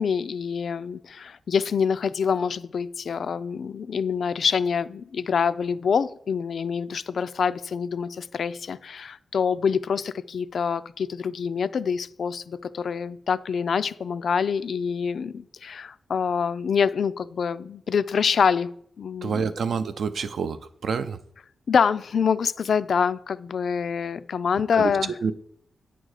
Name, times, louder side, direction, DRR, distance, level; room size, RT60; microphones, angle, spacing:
voice 1, 0.0-18.7 19.0-19.4 21.7-25.3, left 6 dB, 60° left, 15 dB, 0.3 m, -26 dB
voice 2, 19.2-21.2 24.7-24.9 25.2-25.3, right 5 dB, 65° right, 12 dB, 0.5 m, -28 dB
9.0 x 3.8 x 6.4 m, 0.65 s
wide cardioid pair, 165°, 0 cm